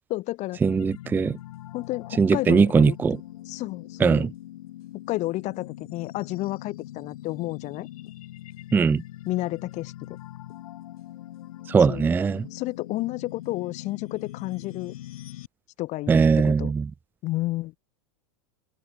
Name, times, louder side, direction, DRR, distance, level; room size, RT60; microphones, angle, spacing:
voice 1, 0.1-0.6 1.7-3.0 3.5-4.3 5.1-7.9 9.2-10.2 11.8-12.1 12.5-14.9 15.8-16.7 17.2-17.7, left 18 dB, 40° left, 3.1 m, -31 dB
sound 1, 0.6-15.5, left 14 dB, 75° left, 6.3 m, -42 dB
voice 2, 0.6-1.4 2.2-3.2 4.0-4.3 8.7-9.0 11.7-12.5 16.1-16.9, right 5 dB, 10° right, 0.5 m, -20 dB
supercardioid pair, 135°, 18 cm